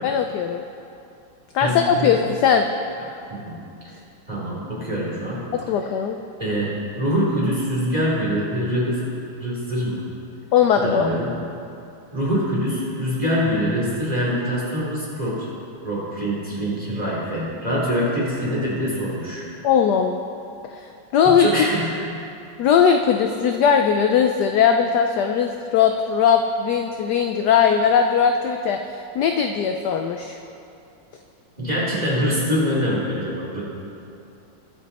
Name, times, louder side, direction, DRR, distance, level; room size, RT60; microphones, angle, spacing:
voice 1, 0.0-0.6 1.5-2.6 5.5-6.2 10.5-11.1 19.6-20.2 20.8-20.9 21.1-21.5 22.6-30.4, left 7 dB, 75° left, 5 dB, 1.0 m, -19 dB
voice 2, 1.6-2.2 3.3-3.6 4.3-5.5 6.4-9.1 9.4-10.0 10.8-11.3 12.1-15.5 15.8-19.5 21.4-21.9 31.6-33.6, equal, 20° right, -7 dB, 3.7 m, -24 dB
22.0 x 7.4 x 4.2 m, 2.7 s
omnidirectional pair, 2.3 m